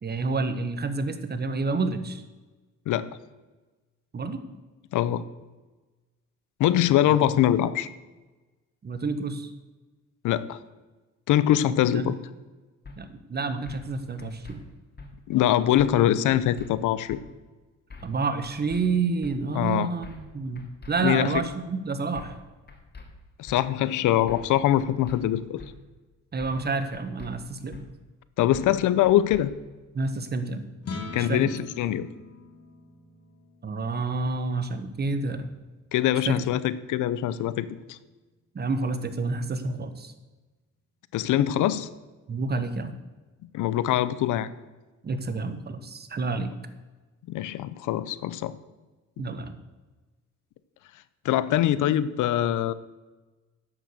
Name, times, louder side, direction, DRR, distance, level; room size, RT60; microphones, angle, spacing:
voice 1, 0.0-2.2 4.1-4.4 7.1-7.2 8.8-9.5 11.9-12.1 13.0-14.6 18.0-22.4 26.3-27.8 29.9-30.7 31.2-31.4 33.6-35.5 36.3-36.5 38.5-40.1 42.3-42.9 45.0-46.5 49.2-49.5, right 3 dB, 35° right, 10 dB, 1.2 m, -29 dB
voice 2, 4.9-5.2 6.6-7.9 10.2-10.6 11.3-12.2 15.3-17.2 19.6-19.9 21.0-21.3 23.4-25.6 28.4-29.5 31.1-32.1 35.9-38.0 41.1-41.9 43.5-44.5 47.3-48.6 51.2-52.7, left 12 dB, 80° left, 15 dB, 0.7 m, -23 dB
sound 1, 12.8-13.0 13.7-13.9 14.2-14.6 15.0-15.1 15.8-16.0 16.3-16.7 17.1-17.2 17.9-18.2 18.4-18.8 19.2-19.3 20.0-20.3 20.6-20.9 21.3-21.5 22.1-22.4 22.7-23.1 23.5-23.6 24.3-24.5 24.8-25.2 25.6-25.7 26.4-26.7 26.9-27.3 27.7-27.8 28.5-28.8 29.0-29.4, left 4 dB, 35° left, 2.2 m, -44 dB
sound 2, 30.8-37.2, left 4 dB, 55° left, 1.9 m, -43 dB
10.5 x 6.7 x 6.6 m, 1.2 s
cardioid pair, 90°, 30 cm